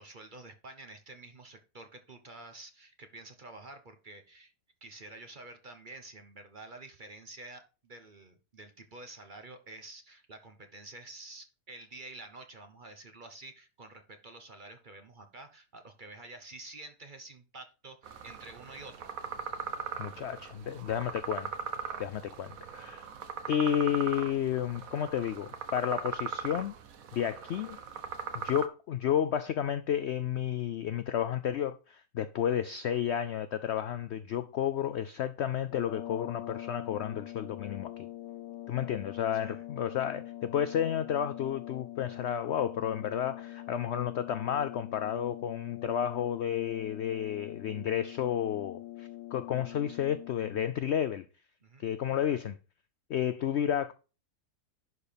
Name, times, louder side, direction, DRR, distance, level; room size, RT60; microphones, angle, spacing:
voice 1, 0.0-4.5 4.8-19.1 39.3-39.6 51.6-51.9, right 2 dB, 35° right, 0.9 m, -49 dB
sound 1, 18.0-28.7, right 7 dB, 60° right, 1.3 m, -40 dB
voice 2, 20.0-21.5 22.0-23.1 23.5-26.7 27.1-27.8 28.3-38.1 38.7-51.3 51.8-52.6 53.1-53.9, left 9 dB, 80° left, 0.6 m, -31 dB
sound 2, 35.6-50.8, left 15 dB, 65° left, 0.9 m, -44 dB
11.0 x 4.4 x 5.2 m
omnidirectional pair, 1.7 m